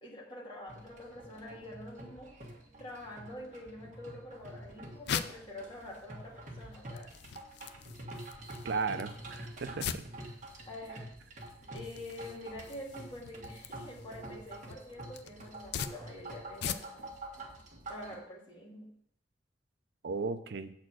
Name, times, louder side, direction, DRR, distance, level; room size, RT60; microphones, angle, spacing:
voice 1, 0.0-2.3 2.8-7.1 10.7-11.0 11.7-17.1 17.9-18.9, left 1 dB, 25° left, -4 dB, 2.2 m, -46 dB
sound 1, 0.7-18.2, right 1 dB, 45° right, 1.7 m, -47 dB
sound 2, 4.4-17.2, left 8 dB, 60° left, 0.4 m, -43 dB
voice 2, 8.6-10.0 20.0-20.7, right 4 dB, 65° right, 10 dB, 0.5 m, -35 dB
7.4 x 4.3 x 6.1 m, 0.71 s
head